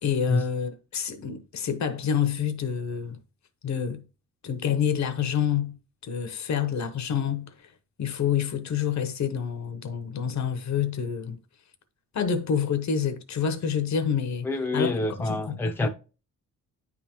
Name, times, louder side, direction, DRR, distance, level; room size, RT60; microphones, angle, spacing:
voice 1, 0.0-3.2 3.6-4.0 4.4-5.7 6.0-7.5 8.0-11.4 12.1-14.5 14.7-14.9 15.2-15.9, left 7 dB, 60° left, 0.8 m, -27 dB
voice 2, 14.4-15.9, left 2 dB, 5° left, 0.6 m, -27 dB
9.4 x 3.6 x 2.9 m
wide cardioid pair, 150°, 31 cm